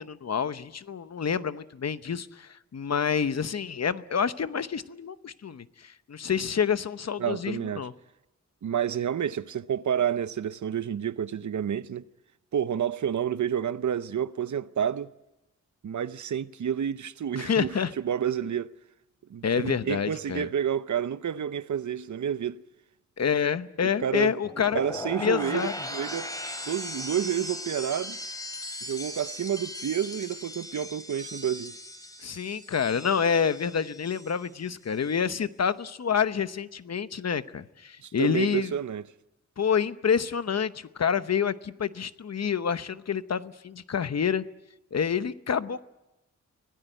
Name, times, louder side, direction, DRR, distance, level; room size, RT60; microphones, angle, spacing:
voice 1, 0.0-7.9 17.4-17.9 19.4-20.5 23.2-24.8 25.2-25.7 32.2-38.7 39.6-44.4 44.9-45.8, left 7 dB, 60° left, 0.9 m, -28 dB
voice 2, 7.2-7.9 8.6-12.0 12.5-15.1 15.8-18.7 19.3-22.6 23.8-24.3 24.7-26.3 26.7-28.2 28.8-31.7 38.0-39.0, right 9 dB, 75° right, 0.7 m, -29 dB
sound 1, 24.4-34.5 34.8-35.3, left 1 dB, 10° left, 3.2 m, -38 dB
25.0 x 17.5 x 9.1 m
wide cardioid pair, 105°, 30 cm